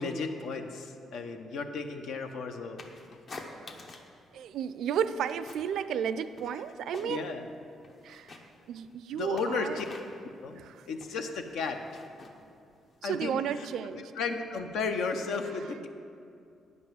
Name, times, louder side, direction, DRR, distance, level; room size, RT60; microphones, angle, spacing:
voice 1, 0.0-2.8 7.0-7.5 9.1-9.9 10.4-11.8 13.0-13.7 13.9-15.9, left 4 dB, 80° left, 5 dB, 0.8 m, -34 dB
sound 1, 2.8-4.2 4.5-5.8 6.0-7.4 7.7-13.1, left 3 dB, 55° left, 1.1 m, -48 dB
voice 2, 4.3-7.3 8.0-9.8 10.6-10.9 13.0-14.1 15.4-15.8, right 8 dB, 75° right, 13 dB, 0.4 m, -33 dB
9.7 x 5.4 x 7.8 m, 2.5 s
cardioid pair, 90°, 0 cm